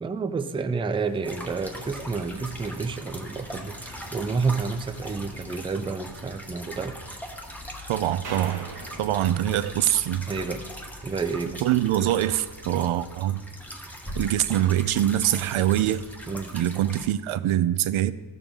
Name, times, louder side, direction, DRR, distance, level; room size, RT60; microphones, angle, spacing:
voice 1, 0.0-7.2 10.3-10.7 11.0-11.6 16.3-16.6, right 4 dB, 10° right, 0.3 m, -30 dB
sound 1, 1.0-11.5, left 2 dB, 80° left, 2.4 m, -53 dB
sound 2, 1.2-17.1, equal, 5° left, 0.9 m, -40 dB
voice 2, 7.9-8.7 9.0-10.3 11.6-13.4 14.2-16.0 16.5-18.1, right 12 dB, 85° right, 0.6 m, -24 dB
sound 3, 8.2-10.6, right 4 dB, 50° right, 1.7 m, -42 dB
14.5 x 6.8 x 3.6 m
wide cardioid pair, 120°, 48 cm